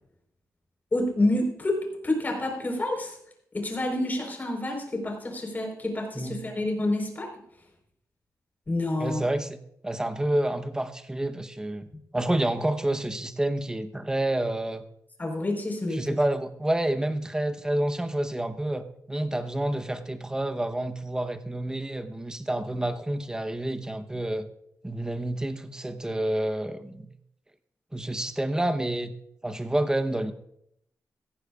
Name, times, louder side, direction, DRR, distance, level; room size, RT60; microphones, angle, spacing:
voice 1, 0.9-3.2 3.5-7.3 8.7-9.3 11.9-12.0 15.2-16.2, left 1 dB, 30° left, 4.3 m, -28 dB
voice 2, 9.0-9.6 9.8-11.9 12.1-14.8 15.9-24.5 24.8-27.1 27.9-29.1 29.4-30.3, right 1 dB, 10° right, 0.9 m, -28 dB
17.0 x 14.5 x 2.4 m
cardioid pair, 105°, 6 cm